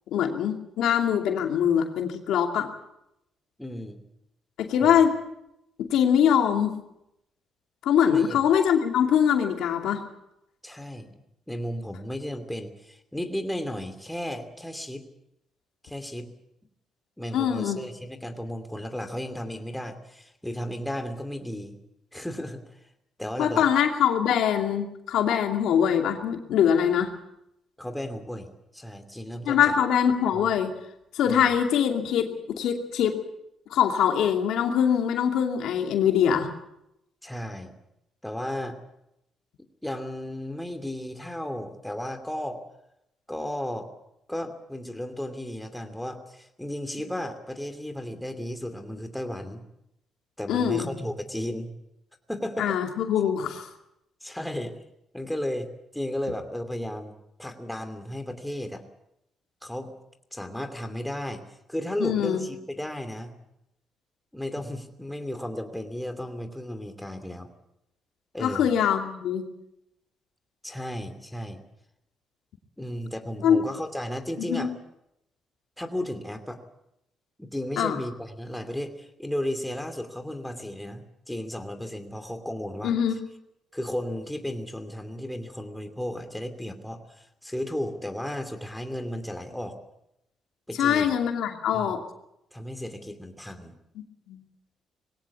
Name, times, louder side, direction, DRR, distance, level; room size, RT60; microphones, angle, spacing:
voice 1, 0.1-2.7 4.6-5.1 5.8-6.8 7.8-10.0 17.3-17.8 23.4-27.1 29.5-30.7 31.1-33.2 33.7-36.5 50.5-50.9 52.6-53.7 62.0-62.5 68.4-69.5 73.4-73.6 74.5-74.7 77.8-78.0 82.8-83.2 90.8-92.0 94.3-94.4, left 8 dB, 80° left, 4 dB, 2.6 m, -23 dB
voice 2, 3.6-4.0 4.8-5.0 8.1-8.4 10.6-11.2 11.5-15.1 15.8-16.3 17.2-21.8 22.1-22.8 23.2-23.7 27.8-29.8 30.3-30.4 31.2-31.5 37.2-37.7 38.2-38.8 39.8-42.6 43.3-43.9 44.3-49.6 50.4-51.7 52.3-52.8 54.2-54.8 55.1-58.8 59.6-59.9 60.3-63.3 64.3-67.5 68.3-68.7 70.6-71.6 72.8-74.7 75.8-76.6 77.4-82.9 83.7-89.8 90.7-91.1 91.7-91.9 92.5-93.8, left 1 dB, 5° left, 7 dB, 2.7 m, -34 dB
21.0 x 17.5 x 8.4 m, 0.83 s
cardioid pair, 90°, 0 cm